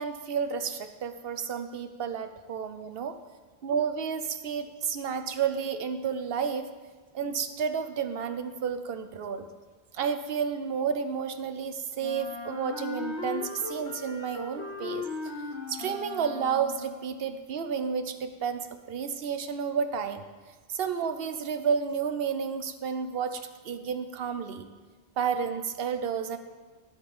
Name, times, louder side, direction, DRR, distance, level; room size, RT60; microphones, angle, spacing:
voice 1, 0.0-3.2 3.6-6.7 7.1-9.5 9.9-15.1 15.7-20.2 20.7-24.7 25.2-26.4, right 6 dB, 65° right, 9 dB, 1.0 m, -31 dB
Wind instrument woodwind instrument, 12.0-17.0, left 4 dB, 90° left, 1.6 m, -38 dB
11.0 x 8.0 x 5.4 m, 1.3 s
omnidirectional pair, 1.1 m